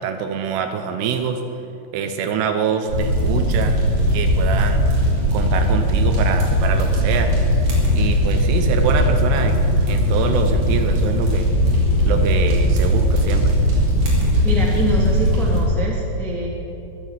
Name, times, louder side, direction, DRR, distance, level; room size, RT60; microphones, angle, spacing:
voice 1, 0.0-1.4 1.9-3.8 4.1-4.8 5.3-7.3 8.0-11.5 12.1-13.6, right 6 dB, 75° right, 6 dB, 2.7 m, -25 dB
sound 1, 2.9-15.6, equal, 50° right, 4.8 m, -18 dB
voice 2, 14.4-16.5, equal, ahead, -3 dB, 0.8 m, -25 dB
22.5 x 8.0 x 7.3 m, 2.8 s
omnidirectional pair, 5.3 m